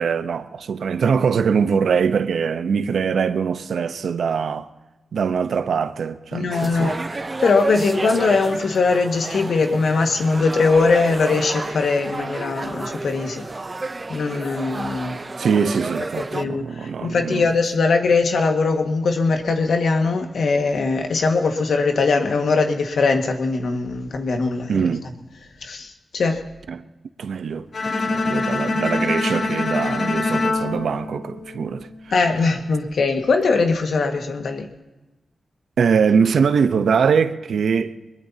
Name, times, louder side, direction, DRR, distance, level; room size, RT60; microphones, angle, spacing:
voice 1, 0.0-4.7 5.1-7.0 15.4-17.5 24.7-25.1 26.7-26.8 27.2-27.7 28.0-31.9 35.8-38.0, right 6 dB, 80° right, 0.9 m, -22 dB
voice 2, 6.3-13.4 14.1-15.2 16.3-24.9 25.6-26.4 32.1-34.7, left 4 dB, 75° left, 1.8 m, -21 dB
sound 1, 6.5-16.4, right 3 dB, 30° right, 0.7 m, -31 dB
Bowed string instrument, 27.7-31.9, left 3 dB, 60° left, 2.5 m, -24 dB
22.5 x 21.5 x 2.9 m
cardioid pair, 80°, 0 cm